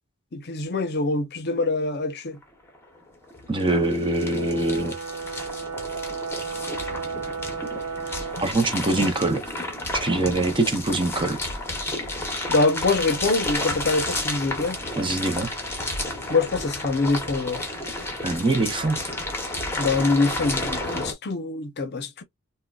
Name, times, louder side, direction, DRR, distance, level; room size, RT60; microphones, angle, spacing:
voice 1, 0.3-2.4 12.5-14.8 16.3-17.6 19.8-22.2, left 3 dB, 50° left, 0.7 m, -24 dB
sound 1, 2.4-2.5 2.7-21.1, left 2 dB, 10° left, 0.9 m, -31 dB
voice 2, 3.5-5.0 8.4-9.4 10.0-11.4 15.0-15.5 18.2-19.0, right 2 dB, 20° right, 0.6 m, -23 dB
Brass instrument, 4.3-8.6, right 5 dB, 90° right, 1.0 m, -33 dB
3.6 x 2.2 x 2.3 m
head